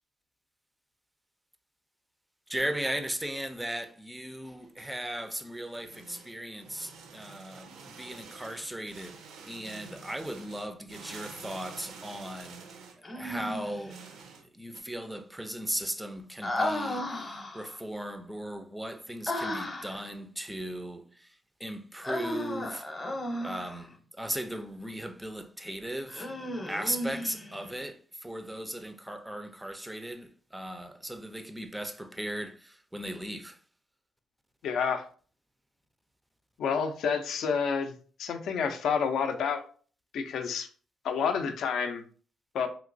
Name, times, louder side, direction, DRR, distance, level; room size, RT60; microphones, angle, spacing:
voice 1, 2.5-12.7 13.2-14.0 14.5-21.3 21.6-22.9 23.4-26.3 26.7-33.6, right 1 dB, 5° right, 0.4 m, -37 dB
sound 1, 4.6-14.8, right 5 dB, 85° right, 0.5 m, -49 dB
Human voice, 13.0-13.9 16.4-17.8 19.3-20.0 22.0-23.8 26.1-27.7, left 1 dB, 25° left, 0.7 m, -34 dB
voice 2, 34.6-35.0 36.6-37.9 38.2-39.6 40.1-40.7 41.0-42.0 42.5-42.7, left 6 dB, 70° left, 0.4 m, -29 dB
2.9 x 2.9 x 2.5 m
cardioid pair, 90°, 0 cm